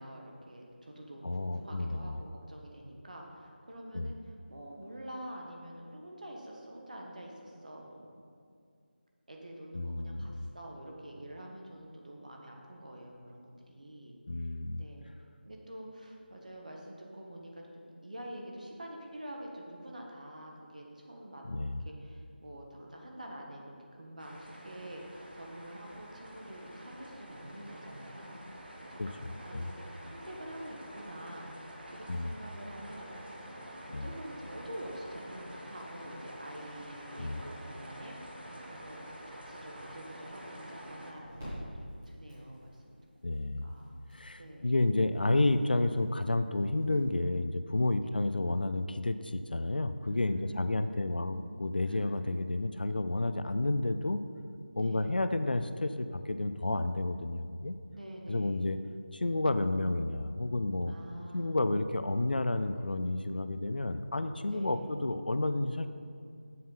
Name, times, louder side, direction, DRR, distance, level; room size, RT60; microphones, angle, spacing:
voice 1, 0.0-8.0 9.3-14.5 14.8-15.0 15.4-21.5 21.8-29.0 29.3-33.1 33.5-38.2 38.7-43.0 43.3-44.0 44.4-44.8 48.0-48.2 50.1-51.2 51.9-52.2 54.8-55.3 57.9-58.7 60.8-61.6 64.5-64.9, right 1 dB, 45° right, 0 dB, 1.2 m, -47 dB
voice 2, 1.2-2.2 3.9-4.1 9.7-10.5 14.3-14.8 21.4-21.8 29.0-29.7 32.1-32.3 33.9-34.1 37.2-37.4 43.2-43.7 44.1-54.2 54.7-57.8 58.3-58.8 59.1-60.9 61.3-65.9, left 2 dB, 55° left, 10 dB, 0.4 m, -31 dB
sound 1, 24.2-41.1, equal, 60° right, 1.4 m, -48 dB
sound 2, 39.8-47.1, equal, 10° right, 2.2 m, -50 dB
7.4 x 5.8 x 5.6 m, 2.2 s
figure-of-eight pair, 180°, 6 cm